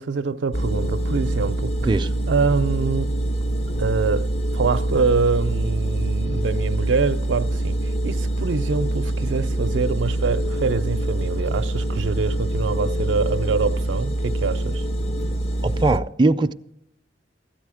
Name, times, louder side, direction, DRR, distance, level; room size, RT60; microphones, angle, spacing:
voice 1, 0.0-1.8 2.3-3.2 3.8-7.8 8.0-14.8, right 4 dB, 85° right, 0.5 m, -24 dB
sound 1, 0.5-16.0, right 1 dB, 35° left, 0.6 m, -25 dB
voice 2, 15.6-16.5, right 2 dB, 25° right, 0.4 m, -20 dB
13.5 x 8.9 x 4.9 m
head